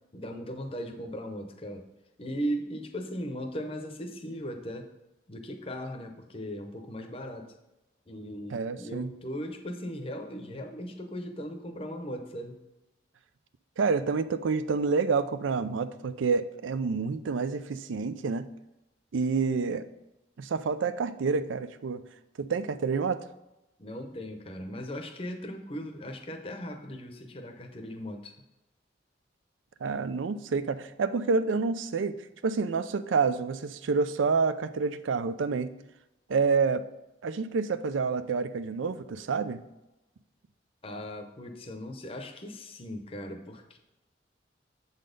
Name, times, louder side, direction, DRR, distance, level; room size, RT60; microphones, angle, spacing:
voice 1, 0.1-1.9 2.2-4.9 5.3-7.5 8.1-12.6 23.8-28.3 40.8-43.8, equal, 30° left, 4 dB, 0.7 m, -38 dB
voice 2, 8.5-9.1 13.8-18.5 19.1-19.8 20.4-22.0 22.4-23.2 29.8-32.2 32.4-35.7 36.3-36.8 37.2-39.6, right 4 dB, 90° right, 12 dB, 0.4 m, -28 dB
7.5 x 4.1 x 5.1 m, 0.97 s
head